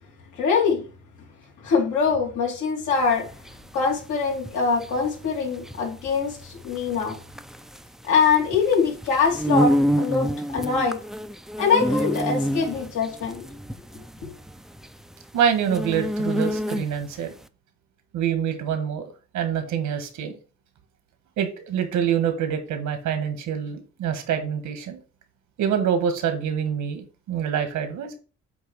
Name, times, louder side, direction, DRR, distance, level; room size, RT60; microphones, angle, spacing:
voice 1, 0.4-0.9 1.6-3.3 3.7-7.2 8.1-11.0 11.6-13.4 14.2-14.3, left 5 dB, 85° left, 2.7 m, -23 dB
sound 1, 3.0-17.2, equal, ahead, 0.3 m, -28 dB
voice 2, 15.3-17.4 18.1-20.4 21.4-25.0 25.6-28.2, right 8 dB, 85° right, 1.6 m, -26 dB
8.1 x 3.0 x 6.3 m
cardioid pair, 110°, 29 cm